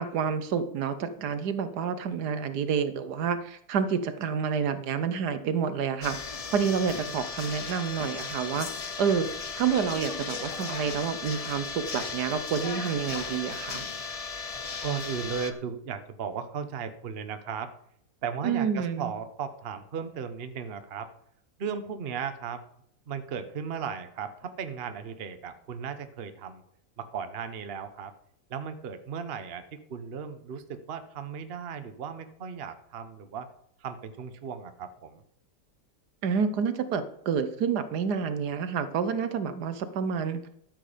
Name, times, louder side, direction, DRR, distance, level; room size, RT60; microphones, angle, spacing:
voice 1, 0.0-6.2 6.5-8.7 9.0-13.8 18.4-19.1 36.2-40.4, right 6 dB, 75° right, 11 dB, 1.5 m, -29 dB
sound 1, 6.0-15.5, left 5 dB, 45° left, 0.4 m, -36 dB
voice 2, 14.8-17.7 18.2-21.1 21.6-22.6 23.1-26.6 27.0-28.1 28.5-33.5 33.8-35.2, right 6 dB, 45° right, 9 dB, 1.0 m, -36 dB
12.5 x 7.9 x 5.1 m, 0.70 s
omnidirectional pair, 1.8 m